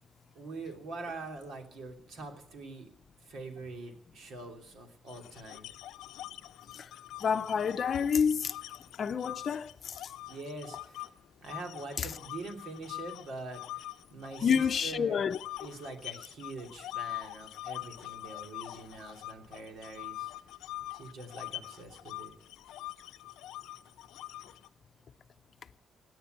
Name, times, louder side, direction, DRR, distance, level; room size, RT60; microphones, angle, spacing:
voice 1, 0.3-2.9 3.2-5.7 10.2-11.1 11.4-15.2 15.6-20.3 20.9-22.3, right 2 dB, 70° right, 3.1 m, -44 dB
sound 1, 5.1-11.1 11.5-14.9 15.3-24.7, left 15 dB, 90° left, 0.6 m, -44 dB
voice 2, 7.2-8.6 9.0-10.0 12.0-12.1 14.4-15.4, left 7 dB, 50° left, 0.6 m, -28 dB
18.0 x 9.6 x 8.0 m
cardioid pair, 90°, 0 cm